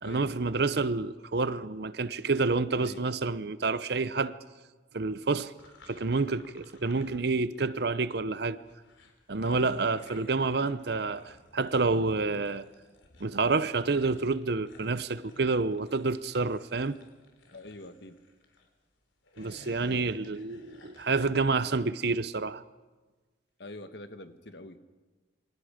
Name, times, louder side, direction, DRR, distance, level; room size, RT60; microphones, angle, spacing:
voice 1, 0.0-4.3 4.9-5.5 5.9-8.6 9.3-12.6 13.2-17.0 19.4-22.6, right 3 dB, 55° right, 0.7 m, -28 dB
Zombie breathing, 5.6-7.8 8.0-18.7 19.1-21.2, left 2 dB, 80° left, 3.7 m, -57 dB
voice 2, 17.5-18.2 23.6-24.8, left 2 dB, 60° left, 1.5 m, -44 dB
28.0 x 24.0 x 5.1 m
head